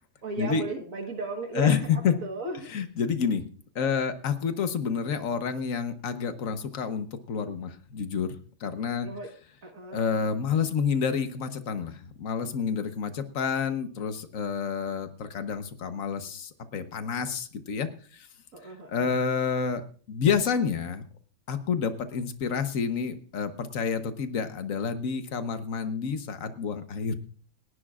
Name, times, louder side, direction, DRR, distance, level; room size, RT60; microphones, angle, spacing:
voice 1, 0.2-2.7 9.0-9.3 9.6-10.0 18.5-19.2, right 3 dB, 75° right, 2 dB, 1.9 m, -36 dB
voice 2, 1.5-2.1 2.7-3.4 3.7-8.3 8.6-9.1 9.9-17.9 18.1-18.3 18.9-21.1 21.5-27.1, left 6 dB, 75° left, 8 dB, 1.5 m, -29 dB
29.0 x 11.0 x 2.5 m, 0.41 s
omnidirectional pair, 1.4 m